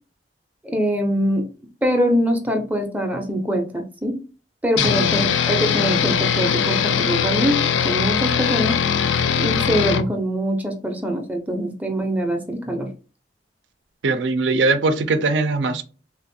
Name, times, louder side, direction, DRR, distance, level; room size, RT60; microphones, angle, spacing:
voice 1, 0.6-1.4 1.8-4.2 4.6-7.6 7.8-8.8 9.3-12.9, equal, 10° right, 0.5 m, -23 dB
sound 1, 4.8-10.0, left 7 dB, 85° left, 0.4 m, -21 dB
voice 2, 14.0-15.8, right 3 dB, 80° right, 0.4 m, -21 dB
3.5 x 2.4 x 2.6 m
head